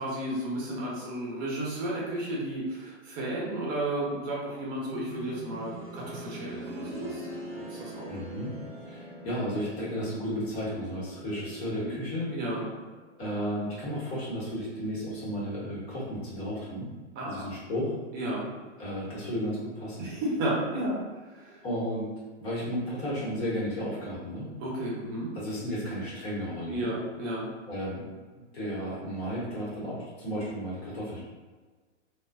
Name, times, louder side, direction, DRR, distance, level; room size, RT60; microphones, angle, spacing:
voice 1, 0.0-7.3 7.7-8.1 11.8-11.9 12.3-12.6 17.2-17.4 18.1-18.5 20.0-21.6 24.6-25.3 26.7-27.5, right 1 dB, 25° right, -4 dB, 0.7 m, -33 dB
sound 1, 4.9-15.7 16.0-16.1 17.0-17.1, right 1 dB, 5° left, 0.5 m, -44 dB
voice 2, 8.1-8.5 8.8-12.3 13.2-16.9 17.2-17.9 18.8-20.1 21.6-22.1 22.4-24.5 25.3-26.9 27.7-28.1 28.5-31.2, equal, 55° left, -7 dB, 1.2 m, -33 dB
2.4 x 2.3 x 2.2 m, 1.3 s
hypercardioid pair, 135°, 38 cm